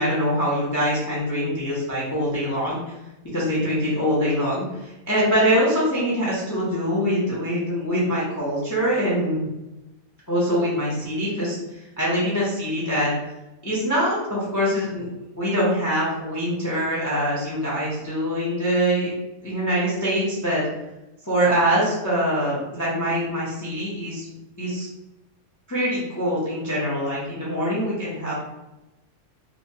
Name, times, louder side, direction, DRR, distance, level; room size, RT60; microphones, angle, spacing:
voice 1, 0.0-2.8 3.3-9.5 10.3-13.1 13.6-15.1 15.4-19.1 19.4-20.6 21.3-24.3 24.6-24.9 25.7-28.3, equal, 25° left, -7 dB, 0.3 m, -24 dB
2.8 x 2.2 x 2.7 m, 0.99 s
omnidirectional pair, 1.5 m